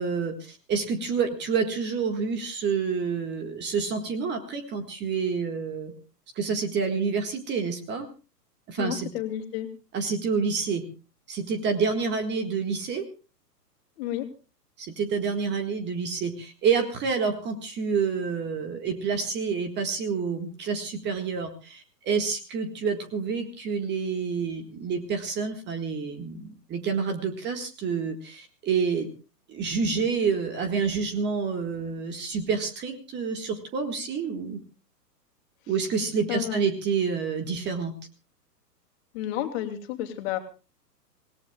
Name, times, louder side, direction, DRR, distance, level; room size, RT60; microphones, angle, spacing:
voice 1, 0.0-5.9 6.4-8.1 8.7-9.1 9.9-10.8 11.3-13.1 14.8-29.1 29.5-34.6 35.7-37.9, right 5 dB, 20° right, 7 dB, 1.7 m, -28 dB
voice 2, 8.8-9.7 14.0-14.3 36.3-36.7 39.1-40.4, left 12 dB, 35° left, 5 dB, 2.6 m, -31 dB
27.0 x 17.5 x 2.3 m, 0.33 s
figure-of-eight pair, 115°, 49 cm